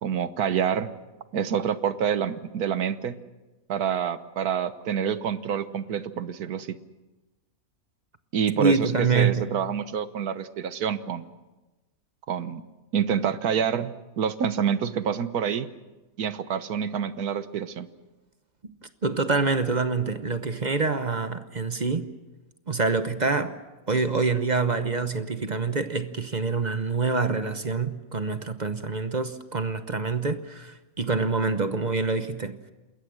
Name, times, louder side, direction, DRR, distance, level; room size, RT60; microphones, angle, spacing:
voice 1, 0.0-0.9 1.3-3.2 3.7-6.8 8.3-11.2 12.3-12.6 12.9-15.7 16.2-17.9, right 8 dB, 80° right, 1.5 m, -27 dB
voice 2, 8.6-9.5 18.6-18.7 19.0-22.1 22.7-23.6 23.9-32.6, right 4 dB, 35° right, 0.9 m, -26 dB
28.0 x 21.0 x 6.4 m
omnidirectional pair, 1.6 m